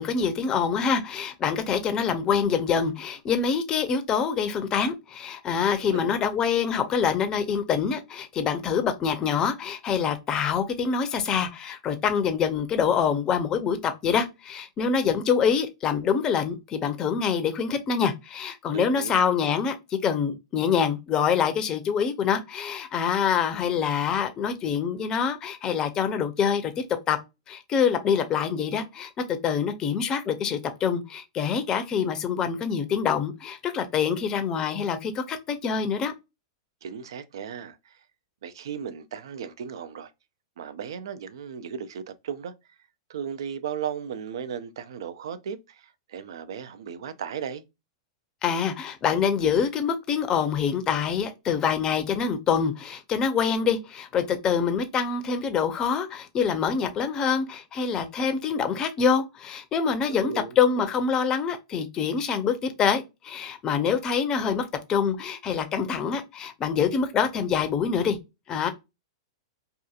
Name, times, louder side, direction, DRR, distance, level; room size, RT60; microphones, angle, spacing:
voice 1, 0.0-26.7 27.1-27.2 27.5-29.1 29.4-36.1 48.4-68.2 68.5-68.7, left 6 dB, 30° left, 0.5 m, -25 dB
voice 2, 5.7-6.1 18.7-19.2 36.8-38.0 38.4-40.1 40.6-42.5 43.1-47.6 60.2-60.6, right 8 dB, 75° right, 0.4 m, -36 dB
2.8 x 2.4 x 2.3 m
hypercardioid pair, 120°, 2 cm